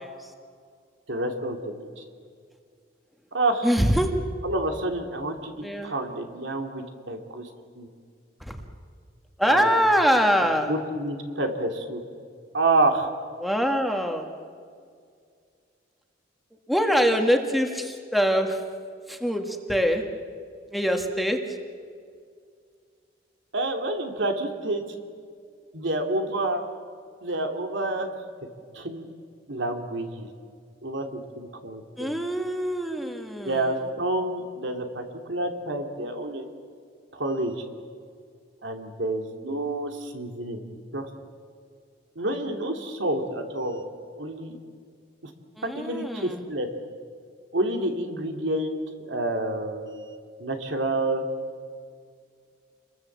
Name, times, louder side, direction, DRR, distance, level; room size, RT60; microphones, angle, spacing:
voice 1, 1.1-2.0 3.3-3.7 4.4-7.4 7.8-7.9 9.5-9.8 10.7-12.0 12.5-13.1 23.5-24.8 25.7-26.6 27.2-28.1 28.7-29.1 29.5-30.3 30.8-32.2 33.4-36.5 37.1-37.6 38.6-41.1 42.2-43.8 44.2-44.6 45.8-46.7 47.5-50.0 50.4-51.2, right 2 dB, 75° right, 4 dB, 3.0 m, -28 dB
voice 2, 3.6-4.1 5.6-5.9 8.5-8.6 9.4-10.7 13.4-14.3 16.7-18.6 19.1-20.0 20.7-21.4 32.0-33.6 45.6-46.4, equal, ahead, 3 dB, 1.9 m, -23 dB
29.0 x 22.5 x 7.5 m, 2.2 s
head